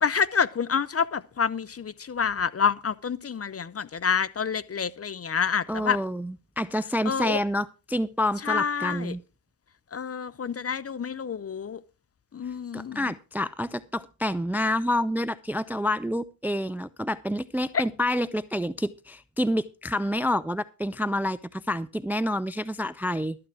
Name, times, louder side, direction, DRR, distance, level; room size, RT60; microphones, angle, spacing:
voice 1, 0.0-6.0 7.1-7.4 8.4-9.1 9.9-11.8 12.3-13.0 17.7-17.8, left 6 dB, 30° left, 0.8 m, -28 dB
voice 2, 5.7-9.2 12.7-23.4, left 1 dB, 5° right, 0.5 m, -28 dB
13.0 x 8.8 x 4.8 m
hypercardioid pair, 50°, 50 cm